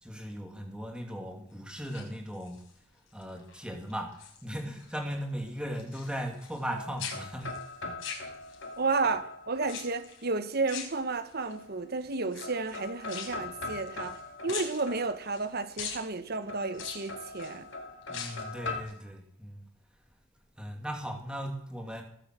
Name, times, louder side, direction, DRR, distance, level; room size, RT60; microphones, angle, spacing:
voice 1, 0.0-2.6 3.1-4.1 4.4-7.5 7.8-7.9 18.1-19.6 20.6-22.0, equal, 5° right, 2.5 m, -37 dB
sound 1, 1.7-2.7 3.2-3.6 3.9-4.9 5.2-6.7 7.0-8.8 9.6-10.2 10.7-11.5 12.2-14.2 14.5-15.4 15.8-16.0 16.7-17.6 18.0-18.5 18.9-19.0, left 7 dB, 90° left, 5.0 m, -42 dB
sound 2, 6.3-10.3 11.5-12.1 12.4-15.6 16.5-18.8, left 3 dB, 70° left, 2.2 m, -42 dB
voice 2, 8.8-17.7, right 3 dB, 55° right, 1.2 m, -32 dB
19.5 x 8.1 x 7.6 m
head